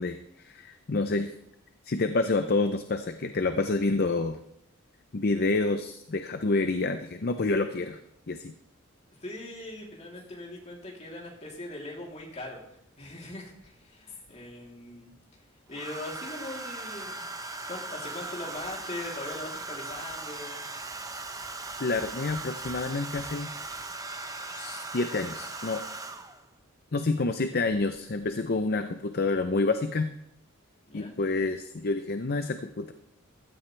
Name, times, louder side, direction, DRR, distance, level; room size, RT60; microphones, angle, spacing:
voice 1, 0.0-1.3 1.8-4.4 5.1-8.0 8.3-8.5 21.8-23.5 24.5-25.8 26.9-30.1 30.9-32.9, left 3 dB, 45° left, 8 dB, 0.6 m, -28 dB
voice 2, 9.2-12.6 13.0-15.1 15.7-17.2 17.7-20.7 30.8-31.1, left 2 dB, 30° left, -2 dB, 3.3 m, -40 dB
Domestic sounds home sounds, 12.1-12.2 13.6-14.3 15.7-26.5 27.7-28.0 28.2-28.6, right 3 dB, 15° right, 0.7 m, -39 dB
15.5 x 13.0 x 3.4 m, 0.75 s
head